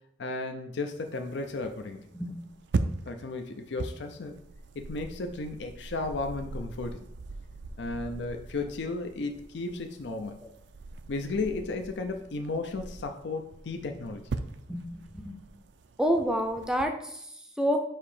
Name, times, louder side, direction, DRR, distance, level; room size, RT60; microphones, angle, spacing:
voice 1, 0.2-2.1 3.1-4.4 4.8-7.0 7.8-10.4 11.1-14.3, left 3 dB, 65° left, 6 dB, 0.5 m, -34 dB
sound 1, 0.9-16.8, right 3 dB, 65° right, 0.4 m, -40 dB
voice 2, 14.7-15.4 16.0-17.8, equal, 5° right, 4 dB, 0.5 m, -29 dB
7.3 x 2.8 x 4.9 m, 0.73 s
head